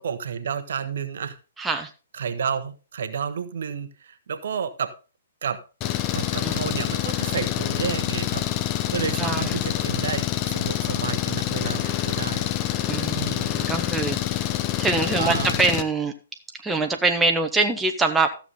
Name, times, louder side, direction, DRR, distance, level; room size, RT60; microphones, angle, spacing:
voice 1, 0.0-1.4 2.2-4.9 5.4-5.6 6.1-8.4 8.9-12.7 13.1-13.6 15.2-15.6, right 7 dB, 60° right, 11 dB, 1.0 m, -31 dB
voice 2, 1.6-1.9 6.4-6.7 9.2-9.5 12.9-14.2 14.8-16.1 16.5-18.3, right 3 dB, 10° right, 4 dB, 1.1 m, -24 dB
Engine, 5.8-15.8, left 12 dB, 30° left, 0.8 m, -26 dB
13.5 x 7.1 x 3.8 m, 0.33 s
figure-of-eight pair, 120°, 0 cm